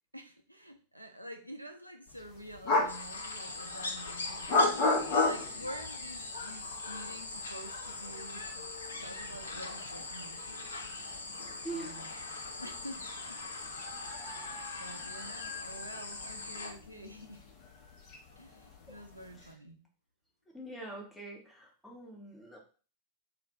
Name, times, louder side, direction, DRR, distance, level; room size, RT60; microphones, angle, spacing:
voice 1, 0.1-10.7 11.7-12.1 12.6-13.4 14.3-17.4 18.4-19.9, equal, 90° right, 5 dB, 0.4 m, -48 dB
sound 1, 2.1-19.5, left 2 dB, 40° left, 0.7 m, -37 dB
sound 2, 2.9-16.7, left 3 dB, 70° left, 0.5 m, -41 dB
voice 2, 11.5-12.0 18.9-19.0 20.5-22.6, right 2 dB, 5° left, -2 dB, 0.8 m, -44 dB
2.4 x 2.1 x 3.9 m, 0.38 s
figure-of-eight pair, 90°, 0 cm